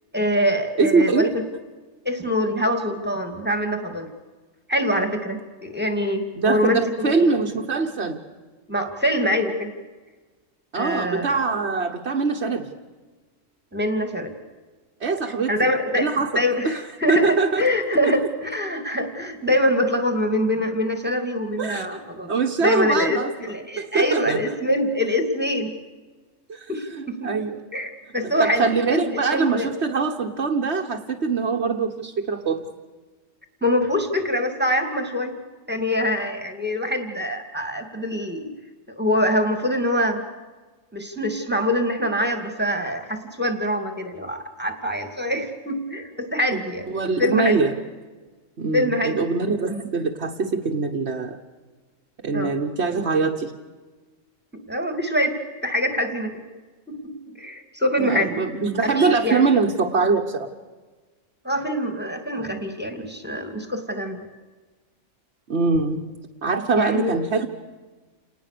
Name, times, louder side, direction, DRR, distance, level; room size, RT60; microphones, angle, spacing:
voice 1, 0.1-1.3 2.0-4.1 4.7-7.1 8.7-9.7 10.7-11.3 13.7-14.3 15.5-22.3 22.6-25.7 26.7-27.4 27.7-29.7 33.6-35.4 35.7-38.5 39.0-40.2 40.9-46.9 47.2-47.6 48.7-49.2 49.7-49.9 52.3-52.5 54.7-56.4 56.9-58.4 58.8-59.4 61.4-64.3 66.7-67.2, left 1 dB, 10° right, 6 dB, 2.6 m, -24 dB
voice 2, 0.8-1.3 6.4-8.2 10.7-12.7 15.0-15.5 15.9-16.8 17.1-17.6 18.0-18.1 21.6-22.0 22.3-23.3 23.8-24.6 26.5-27.6 28.2-32.7 46.9-47.7 48.6-51.4 52.2-53.5 58.0-60.5 65.5-66.0 66.4-67.5, right 4 dB, 55° right, 1 dB, 1.6 m, -23 dB
29.0 x 19.5 x 6.9 m, 1.3 s
omnidirectional pair, 1.3 m